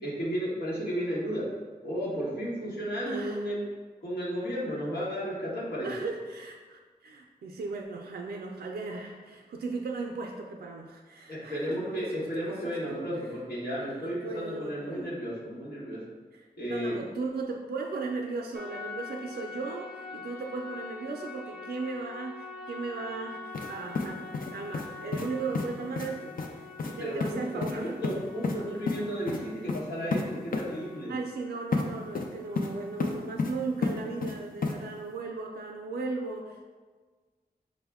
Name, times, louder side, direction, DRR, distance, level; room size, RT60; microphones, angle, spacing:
voice 1, 0.0-1.4 1.8-3.6 4.0-5.9 11.3-16.0 16.6-16.9 27.0-27.4 27.7-31.1, equal, 85° left, -7 dB, 1.1 m, -33 dB
voice 2, 3.0-3.4 5.8-13.1 13.8-15.1 16.3-24.2 24.5-28.0 29.4-29.7 31.1-36.6, right 3 dB, 80° right, 0 dB, 0.4 m, -37 dB
sound 1, 18.5-33.0, left 4 dB, 5° right, 0.6 m, -45 dB
sound 2, 23.5-23.7 23.9-24.9 25.1-25.3 25.5-25.7 25.9-26.1 26.4-26.5 26.8-26.9 27.2-27.3 27.6-27.7 28.0-28.6 28.9-29.0 29.3-29.4 29.7-29.8 30.1-30.2 30.5-30.6 31.7-31.8 32.1-32.7 33.0-33.5 33.8-34.3 34.6-34.7, left 4 dB, 60° left, 0.5 m, -30 dB
5.4 x 2.1 x 3.4 m, 1.4 s
cardioid pair, 60°, 16 cm